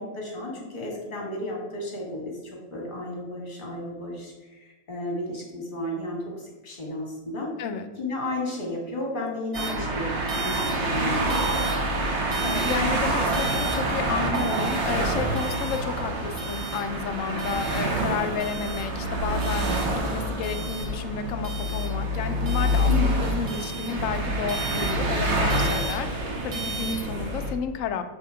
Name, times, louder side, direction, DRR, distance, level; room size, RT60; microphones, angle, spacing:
voice 1, 0.0-7.5 8.0-11.4 22.8-23.1, left 1 dB, 30° left, -1 dB, 2.0 m, -33 dB
voice 2, 7.6-7.9 12.4-22.9 23.2-28.0, left 7 dB, 65° left, 8 dB, 0.8 m, -31 dB
sound 1, 9.5-27.5, right 1 dB, 40° right, 1.3 m, -27 dB
7.6 x 3.7 x 4.9 m, 1.2 s
omnidirectional pair, 2.0 m